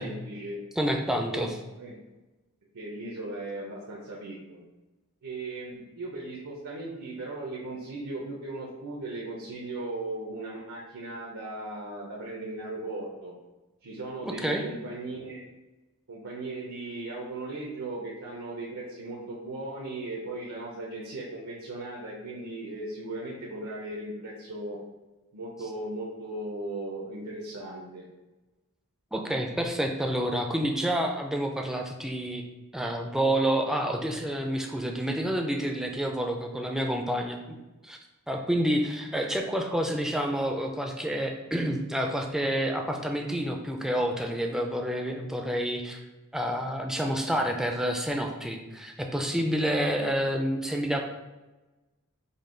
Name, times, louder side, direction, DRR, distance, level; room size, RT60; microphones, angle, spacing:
voice 1, 0.0-0.6 1.3-1.5 1.8-1.9 2.7-4.6 5.2-13.3 13.8-15.4 16.1-24.8 25.3-28.0, right 2 dB, 85° right, -3 dB, 0.7 m, -37 dB
voice 2, 0.8-1.5 14.2-14.6 29.1-32.4 32.7-37.4 37.8-38.0 38.3-46.0 46.3-51.0, equal, ahead, 2 dB, 0.4 m, -28 dB
5.3 x 2.2 x 3.7 m, 1.1 s
head